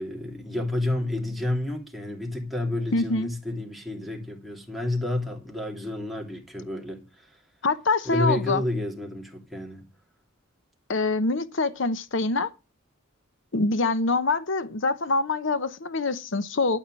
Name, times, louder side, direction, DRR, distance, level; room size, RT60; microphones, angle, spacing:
voice 1, 0.0-7.3 8.1-9.8, left 1 dB, ahead, 2.8 m, -30 dB
voice 2, 2.9-3.3 7.6-8.6 10.9-12.5 13.5-16.8, left 3 dB, 65° left, 0.9 m, -25 dB
12.5 x 5.7 x 7.6 m
head